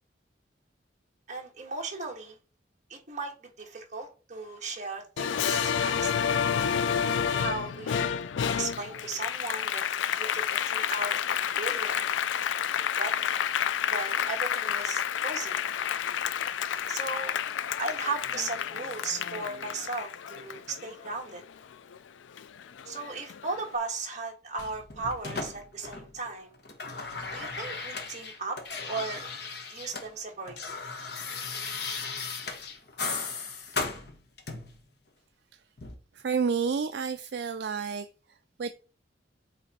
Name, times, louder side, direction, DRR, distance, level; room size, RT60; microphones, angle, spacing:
voice 1, 1.3-2.4 2.9-6.5 7.4-8.1 8.6-9.8 10.1-11.2 11.6-12.0 12.7-15.6 16.9-17.3 17.8-21.4 22.9-26.5 27.3-28.6 28.9-29.2 29.7-30.8, right 3 dB, 40° right, 1.5 m, -36 dB
Applause, 5.2-22.0 22.4-23.5, left 8 dB, 85° left, 0.4 m, -30 dB
sound 1, 24.6-26.3 26.5-30.1 30.3-34.8 35.8-35.9, left 4 dB, 60° left, 1.2 m, -36 dB
voice 2, 36.1-38.1 38.6-38.7, right 6 dB, 60° right, 0.4 m, -29 dB
8.2 x 3.3 x 4.2 m
head